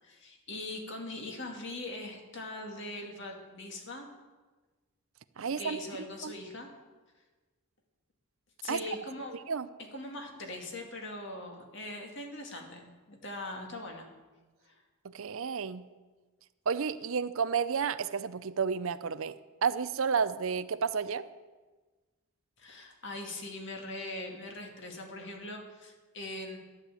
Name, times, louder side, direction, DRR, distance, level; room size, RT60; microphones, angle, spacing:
voice 1, 0.0-4.1 5.4-6.7 8.6-9.3 9.9-14.1 14.6-14.8 22.6-26.6, left 2 dB, 55° left, 2 dB, 2.3 m, -41 dB
voice 2, 5.4-5.8 6.2-6.3 8.7-8.8 9.3-9.7 15.0-15.8 16.7-19.4 19.6-21.3, right 6 dB, 65° right, 14 dB, 0.5 m, -31 dB
12.5 x 9.9 x 7.6 m, 1.3 s
head